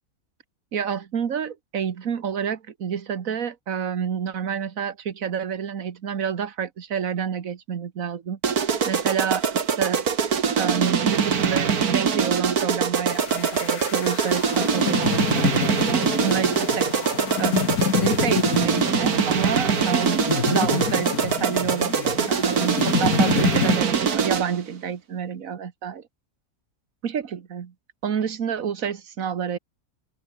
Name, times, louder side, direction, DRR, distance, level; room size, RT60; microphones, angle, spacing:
voice 1, 0.7-8.4 8.9-10.1 10.6-16.9 17.4-17.7 18.0-20.2 20.5-26.0 27.0-27.7 28.0-29.6, right 7 dB, 65° right, 1.7 m, -28 dB
sound 1, 8.4-24.6, right 6 dB, 85° right, 2.2 m, -23 dB
sound 2, 13.1-23.8, left 8 dB, 85° left, 1.7 m, -28 dB
omnidirectional pair, 1.5 m